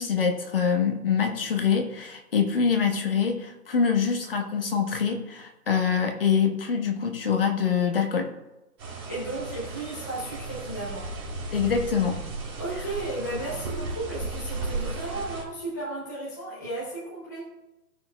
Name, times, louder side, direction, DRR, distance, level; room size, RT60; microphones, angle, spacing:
voice 1, 0.0-8.3 11.5-12.2, left 6 dB, 35° left, 4 dB, 1.1 m, -25 dB
sound 1, 8.8-15.4, right 3 dB, 15° right, 2.2 m, -35 dB
voice 2, 9.1-11.1 12.6-17.5, right 2 dB, 10° left, -7 dB, 0.8 m, -34 dB
16.5 x 6.1 x 2.3 m, 0.99 s
hypercardioid pair, 170°, 47 cm